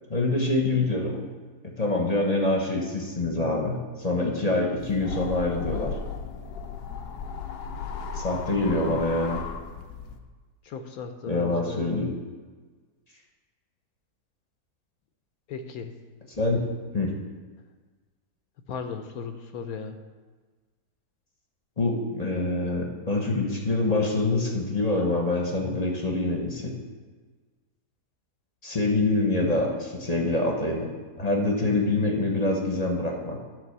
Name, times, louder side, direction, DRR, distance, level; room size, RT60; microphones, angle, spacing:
voice 1, 0.1-1.2 1.6-5.9 8.1-9.4 11.2-12.1 16.4-16.7 16.9-17.1 21.8-26.7 28.6-30.9 31.2-33.4, left 2 dB, 30° left, 1 dB, 1.0 m, -25 dB
sound 1, 4.8-10.2, left 6 dB, 90° left, 1.3 m, -35 dB
voice 2, 10.6-11.9 15.5-15.9 18.7-20.0, left 6 dB, 70° left, 6 dB, 1.1 m, -36 dB
11.5 x 3.9 x 6.6 m, 1.4 s
omnidirectional pair, 1.7 m